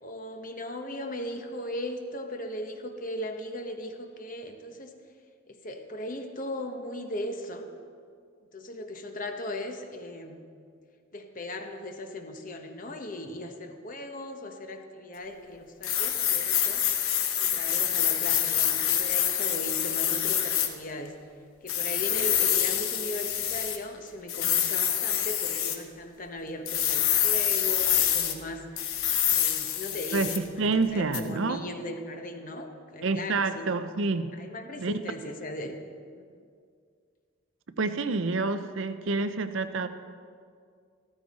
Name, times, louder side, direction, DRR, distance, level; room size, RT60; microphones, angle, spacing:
voice 1, 0.0-4.9 5.5-7.7 8.5-10.4 11.1-16.8 17.4-21.1 21.6-28.6 29.3-30.6 30.9-33.7 34.4-35.8 36.2-36.3, left 1 dB, 40° left, 5 dB, 1.0 m, -38 dB
sound 1, 15.8-20.7 21.7-23.8 24.3-25.8 26.7-28.3 28.8-30.5 31.1-31.2, left 10 dB, 80° left, 1.0 m, -26 dB
voice 2, 30.1-31.6 33.0-34.3 34.8-35.0 37.8-39.9, right 3 dB, 65° right, 10 dB, 0.6 m, -28 dB
14.0 x 14.0 x 4.2 m, 2.2 s
head